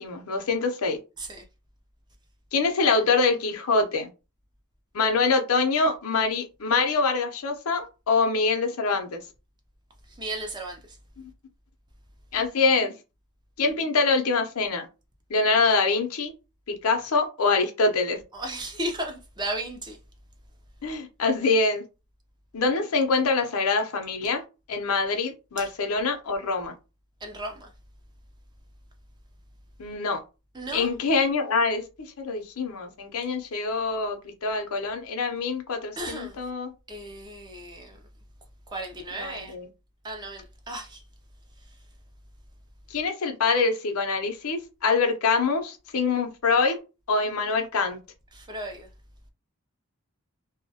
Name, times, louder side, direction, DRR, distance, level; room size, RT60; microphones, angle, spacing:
voice 1, 0.0-1.0 2.5-4.1 4.9-9.2 11.2-11.3 12.3-13.0 13.6-14.9 15.3-16.3 16.7-18.2 20.8-21.8 22.5-26.7 29.8-30.2 30.7-36.7 39.1-39.7 42.9-46.8 47.1-48.0, left 4 dB, 70° left, 0.6 m, -25 dB
voice 2, 10.1-11.0 18.3-20.0 25.6-25.7 27.2-27.7 30.5-30.9 36.0-36.4 36.9-38.0 38.7-39.5 40.0-41.0 48.3-48.9, right 1 dB, 20° right, 0.4 m, -35 dB
2.2 x 2.1 x 2.7 m
head